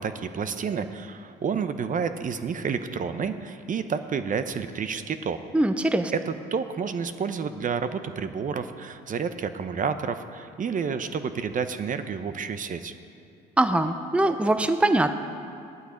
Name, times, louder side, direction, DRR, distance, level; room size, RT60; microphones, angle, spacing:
voice 1, 0.0-5.4 6.1-12.9, right 6 dB, 40° right, 10 dB, 0.8 m, -30 dB
voice 2, 5.5-6.1 13.6-15.1, right 1 dB, 5° right, 9 dB, 0.7 m, -22 dB
15.5 x 11.5 x 5.1 m, 2.6 s
supercardioid pair, 80°, 21 cm